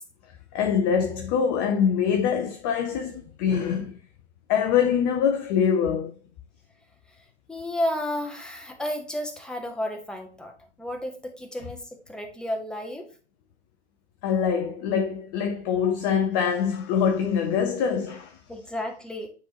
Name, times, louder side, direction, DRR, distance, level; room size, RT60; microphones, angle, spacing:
voice 1, 0.5-4.0 4.5-6.1 14.2-18.4, left 7 dB, 20° left, 0.4 m, -24 dB
voice 2, 7.5-10.5 10.8-11.8 12.1-13.1 18.5-19.3, left 1 dB, ahead, 0.8 m, -32 dB
9.1 x 3.7 x 2.8 m
figure-of-eight pair, 100°, 34 cm